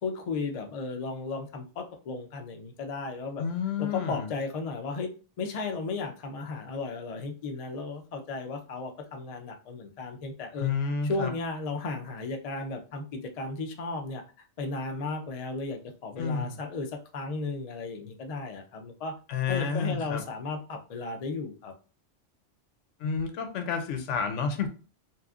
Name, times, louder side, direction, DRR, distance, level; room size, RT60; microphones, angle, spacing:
voice 1, 0.0-3.4 3.8-5.1 5.4-10.7 11.0-14.2 14.6-19.1 19.5-21.7, left 3 dB, 65° left, 4 dB, 0.4 m, -35 dB
voice 2, 3.4-4.3 10.6-11.3 16.2-16.6 19.3-20.2 23.0-24.7, left 5 dB, 80° left, 6 dB, 0.9 m, -30 dB
2.9 x 2.3 x 2.3 m, 0.36 s
omnidirectional pair, 1.2 m